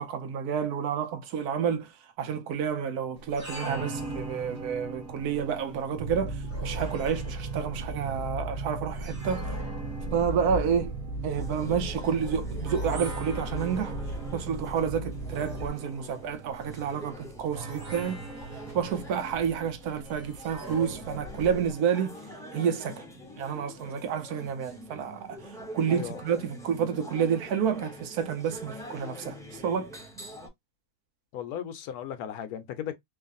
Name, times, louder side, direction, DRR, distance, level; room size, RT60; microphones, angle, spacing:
voice 1, 0.0-1.9 2.2-9.5 10.1-10.9 11.2-14.0 14.3-18.2 18.7-22.2 22.5-23.0 23.4-25.4 25.7-29.9, right 7 dB, 80° right, 1.2 m, -29 dB
sound 1, 3.2-21.7, right 2 dB, 40° right, 1.5 m, -42 dB
kerri-cat-mix-loopable, 6.0-15.7, right 2 dB, 55° right, 0.5 m, -35 dB
sound 2, 11.4-30.5, equal, 5° left, 0.5 m, -45 dB
voice 2, 31.3-32.9, left 9 dB, 80° left, 1.1 m, -36 dB
3.1 x 2.5 x 2.4 m
omnidirectional pair, 1.6 m